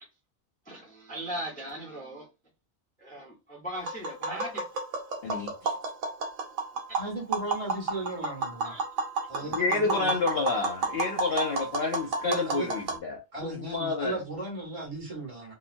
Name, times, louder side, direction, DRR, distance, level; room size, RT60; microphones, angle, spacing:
voice 1, 0.7-2.3 3.0-4.6 8.6-8.8, right 1 dB, 10° left, 0.6 m, -38 dB
Tap, 3.8-13.0, right 3 dB, 70° right, 1.0 m, -32 dB
voice 2, 5.2-5.7 9.5-14.1, left 4 dB, 60° left, 0.6 m, -29 dB
voice 3, 6.9-8.7 9.3-10.1 12.2-12.7 13.3-15.5, right 2 dB, 25° right, 1.1 m, -36 dB
2.9 x 2.1 x 2.5 m
omnidirectional pair, 1.4 m